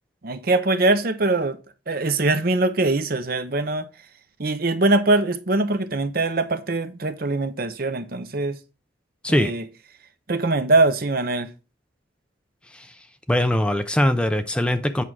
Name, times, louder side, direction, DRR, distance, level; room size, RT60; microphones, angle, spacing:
voice 1, 0.2-1.6 1.9-3.8 4.4-8.6 9.3-9.7 10.3-11.5, right 2 dB, 50° right, 0.8 m, -22 dB
voice 2, 13.3-15.0, left 1 dB, 5° left, 0.4 m, -21 dB
8.4 x 3.5 x 6.1 m
head